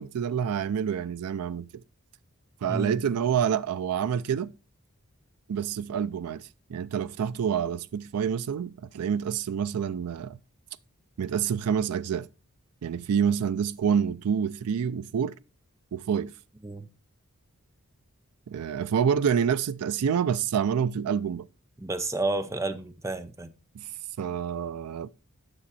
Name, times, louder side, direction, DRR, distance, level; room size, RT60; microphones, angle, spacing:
voice 1, 0.0-1.8 2.6-4.5 5.5-10.4 11.2-12.3 12.8-15.3 15.9-16.3 18.5-21.5 23.7-23.9 24.2-25.1, right 7 dB, 85° right, 0.4 m, -27 dB
voice 2, 21.8-23.5, right 2 dB, 15° right, 0.6 m, -31 dB
10.0 x 6.1 x 4.1 m
head